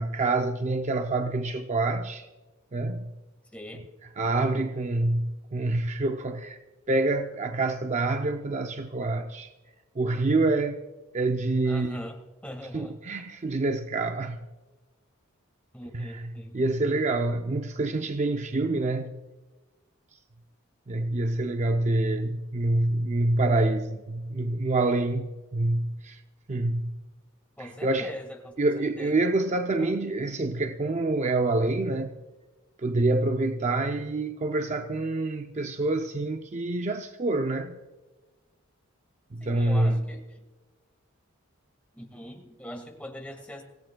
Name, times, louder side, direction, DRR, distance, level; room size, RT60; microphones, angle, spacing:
voice 1, 0.0-2.3 2.7-3.1 3.7-6.6 6.9-9.5 10.0-10.8 11.1-12.0 12.7-14.4 15.9-19.2 20.9-26.2 26.5-27.0 27.6-28.1 28.6-32.2 32.8-37.8 39.3-40.1, right 2 dB, 35° right, 0.5 m, -27 dB
voice 2, 3.5-3.8 11.7-12.2 12.4-12.9 15.7-16.6 27.6-28.5 29.0-29.1 29.8-30.0 39.4-40.2 41.9-43.6, equal, 5° left, 1.8 m, -41 dB
25.0 x 16.5 x 2.3 m
head